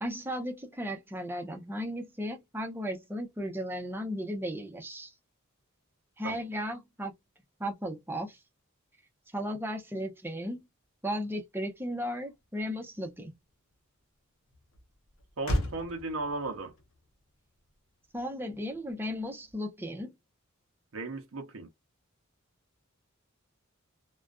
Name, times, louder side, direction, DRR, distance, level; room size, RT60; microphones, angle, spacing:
voice 1, 0.0-5.1 6.2-7.1 7.6-8.4 9.3-10.7 11.0-13.3 18.1-20.1, equal, 10° right, 0.6 m, -35 dB
Motor vehicle (road), 11.5-20.0, left 1 dB, 80° left, 0.7 m, -40 dB
voice 2, 15.4-16.7 20.9-21.7, right 3 dB, 75° right, 0.6 m, -36 dB
2.4 x 2.2 x 2.2 m
head